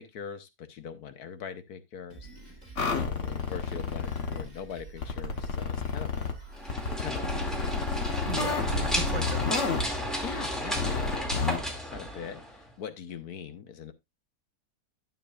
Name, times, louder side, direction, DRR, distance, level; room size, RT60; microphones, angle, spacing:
voice 1, 0.0-6.3 7.0-7.8 10.2-13.9, left 7 dB, 75° left, 1.4 m, -42 dB
Drum kit, 2.1-10.4, right 3 dB, 25° right, 3.6 m, -48 dB
sound 1, 2.8-4.4 5.0-6.3 6.7-9.8 10.8-11.6, left 5 dB, 50° left, 1.4 m, -30 dB
sound 2, 6.5-12.7, equal, ahead, 2.2 m, -33 dB
voice 2, 8.3-9.6, right 3 dB, 60° right, 2.3 m, -36 dB
11.5 x 7.5 x 2.4 m
omnidirectional pair, 1.7 m